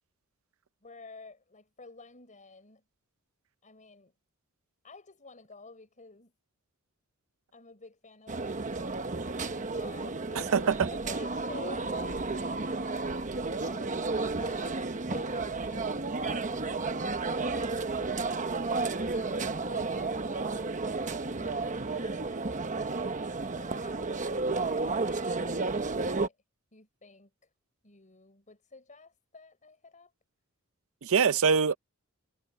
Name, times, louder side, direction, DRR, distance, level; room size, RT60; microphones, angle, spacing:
voice 1, 0.8-2.8 3.6-4.1 4.8-6.3 7.5-12.2 12.7-20.8 21.3-23.1 23.6-26.4 26.7-27.3 27.8-30.1, left 3 dB, 35° left, 5.5 m, -51 dB
sound 1, 8.3-26.3, right 3 dB, 35° right, 1.0 m, -32 dB
voice 2, 10.3-10.9 31.0-31.8, right 6 dB, 65° right, 0.6 m, -24 dB
head